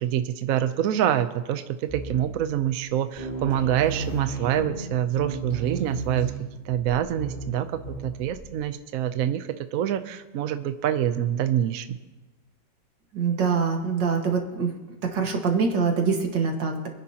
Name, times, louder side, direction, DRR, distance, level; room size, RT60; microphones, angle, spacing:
voice 1, 0.0-6.3 6.7-12.0, right 10 dB, 65° right, 10 dB, 0.9 m, -26 dB
sound 1, 1.9-2.5 2.8-2.9 3.2-8.5, right 4 dB, 30° left, 5.1 m, -34 dB
voice 2, 13.1-14.7 15.1-16.9, right 5 dB, 80° right, 2 dB, 2.3 m, -24 dB
26.5 x 10.0 x 2.9 m, 1.2 s
omnidirectional pair, 1.9 m